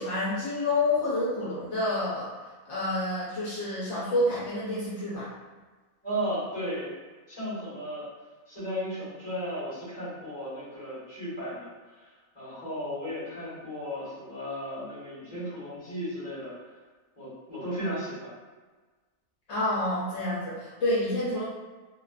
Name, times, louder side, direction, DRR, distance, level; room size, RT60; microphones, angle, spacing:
voice 1, 0.0-2.3 2.7-5.3 19.5-21.4, left 2 dB, 65° left, -9 dB, 1.0 m, -28 dB
voice 2, 6.0-6.9 7.3-8.0 8.5-11.7 12.3-16.5 17.2-18.3, equal, 35° left, -12 dB, 1.5 m, -35 dB
2.5 x 2.4 x 2.3 m, 1.3 s
omnidirectional pair, 1.3 m